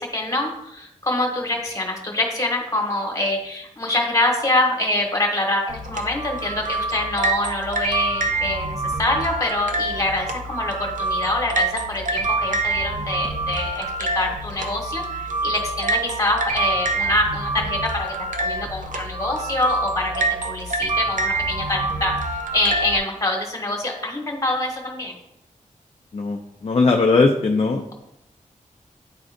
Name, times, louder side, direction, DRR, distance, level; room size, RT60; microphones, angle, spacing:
voice 1, 0.0-25.1, left 2 dB, 25° left, 0 dB, 1.4 m, -25 dB
sound 1, 5.7-23.0, right 2 dB, 65° right, 0.6 m, -26 dB
voice 2, 26.1-27.8, left 3 dB, 45° left, 3 dB, 0.5 m, -19 dB
9.7 x 3.8 x 2.5 m, 0.82 s
wide cardioid pair, 130°, 14 cm